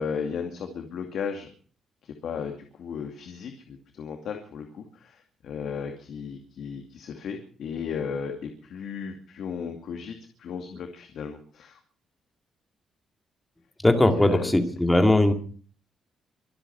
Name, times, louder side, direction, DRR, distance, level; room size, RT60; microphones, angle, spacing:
voice 1, 0.0-1.5 2.0-11.8 14.1-14.5, left 6 dB, 60° left, 5 dB, 2.4 m, -35 dB
voice 2, 13.8-15.3, left 1 dB, 5° left, 6 dB, 2.2 m, -19 dB
25.0 x 8.9 x 6.0 m, 0.43 s
cardioid pair, 165°, 0 cm